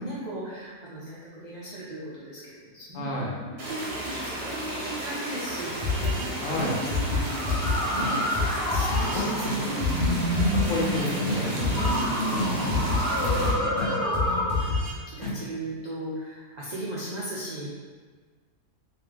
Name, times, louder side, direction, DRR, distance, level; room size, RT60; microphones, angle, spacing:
voice 1, 0.0-3.2 3.4-6.8 7.1-7.4 7.9-8.3 8.7-10.3 11.8-12.0 12.8-13.4 14.2-14.4 14.7-17.7, right 1 dB, 75° right, -8 dB, 0.4 m, -37 dB
voice 2, 2.9-3.4 6.4-6.8 9.1-9.6 10.5-12.4 13.2-13.9, left 1 dB, 65° left, -3 dB, 1.0 m, -32 dB
sound 1, 3.6-13.5, right 1 dB, 50° right, 0.9 m, -34 dB
sound 2, 5.8-6.3 6.5-9.2 9.4-9.5 9.8-12.0 12.3-14.9 15.2-15.3, left 3 dB, ahead, 1.2 m, -29 dB
sound 3, 6.4-14.5, equal, 40° left, 0.3 m, -29 dB
3.1 x 2.7 x 3.8 m, 1.5 s
omnidirectional pair, 1.6 m